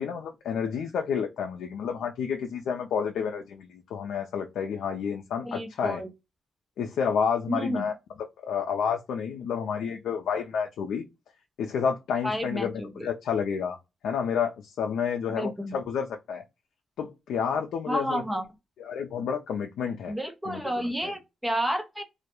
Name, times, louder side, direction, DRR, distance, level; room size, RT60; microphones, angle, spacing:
voice 1, 0.0-6.0 6.8-7.9 8.4-11.1 11.6-13.8 14.0-16.4 17.0-18.2 18.8-20.1 20.5-21.1, left 7 dB, 85° left, 0.3 m, -30 dB
voice 2, 5.4-6.1 7.5-7.9 12.2-13.1 15.4-15.8 17.9-18.4 20.1-22.0, equal, 5° right, 0.5 m, -31 dB
2.2 x 2.0 x 2.8 m
wide cardioid pair, 150°, 0 cm